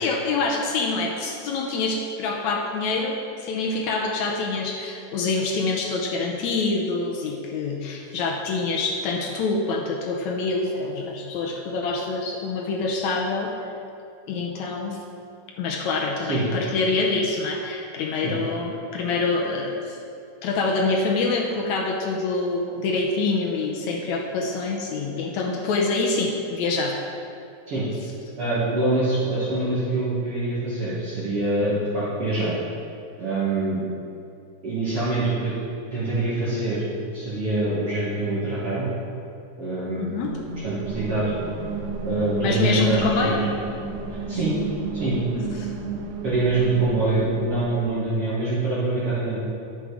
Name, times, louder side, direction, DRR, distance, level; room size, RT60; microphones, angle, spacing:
voice 1, 0.0-13.5 14.3-15.0 15.6-20.0 20.4-27.0 40.0-40.3 42.4-43.4 45.3-45.7, left 3 dB, 75° left, 0 dB, 2.0 m, -26 dB
voice 2, 28.4-32.5 33.2-33.8 34.6-35.5 35.9-36.8 37.1-38.9 39.6-40.1 40.6-41.3 42.0-43.4 44.1-44.5 44.9-45.2 46.2-49.4, right 2 dB, 50° right, -10 dB, 2.4 m, -25 dB
sound 1, 40.3-48.0, right 5 dB, 90° right, 2.3 m, -32 dB
10.5 x 7.2 x 4.9 m, 2.5 s
omnidirectional pair, 3.6 m